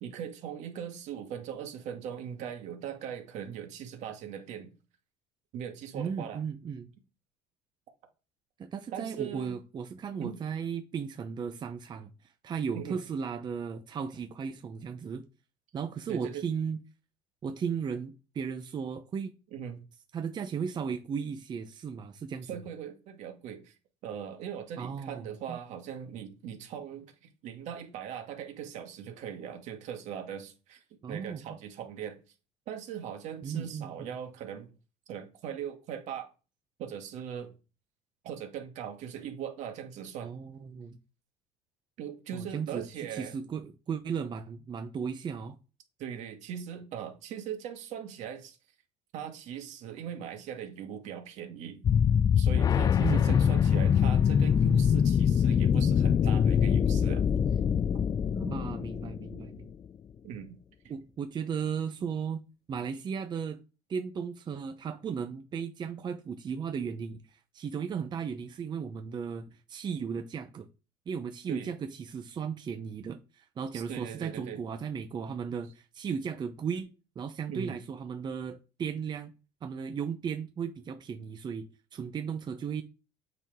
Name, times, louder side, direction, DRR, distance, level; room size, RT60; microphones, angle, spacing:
voice 1, 0.0-4.7 5.5-6.4 8.9-9.6 10.2-10.4 12.7-13.0 16.1-16.4 19.5-19.8 22.5-23.7 24.0-27.1 27.4-30.8 31.1-32.2 32.7-34.7 35.1-36.3 36.8-37.5 38.2-40.3 42.0-43.3 46.0-48.6 49.1-51.8 52.4-57.3 60.2-60.6 71.5-71.7 73.7-74.6 77.5-77.8, right 8 dB, 65° right, 2.0 m, -40 dB
voice 2, 5.9-6.9 8.6-15.2 15.7-16.8 17.4-19.3 20.1-22.6 24.8-25.6 31.0-31.6 33.4-34.1 40.2-41.0 42.3-45.6 53.0-53.4 58.3-59.7 60.9-62.4 62.7-63.6 63.9-70.7 71.1-76.9 77.2-79.3 79.6-82.8, right 6 dB, 35° right, 0.8 m, -36 dB
sound 1, 51.8-59.6, left 8 dB, 30° left, 0.3 m, -24 dB
8.0 x 5.5 x 3.7 m
supercardioid pair, 100°, 13 cm